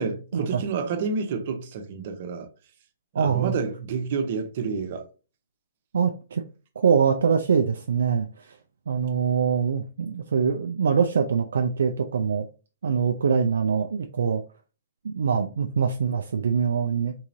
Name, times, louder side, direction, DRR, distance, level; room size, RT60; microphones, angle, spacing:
voice 1, 0.0-2.5 3.1-5.0, right 5 dB, 50° right, 0.7 m, -29 dB
voice 2, 3.1-3.5 5.9-6.4 6.8-8.6 8.9-12.5 12.8-14.4 15.0-17.1, right 6 dB, 70° right, 0.3 m, -24 dB
3.7 x 3.0 x 2.6 m
hypercardioid pair, 125°, 0 cm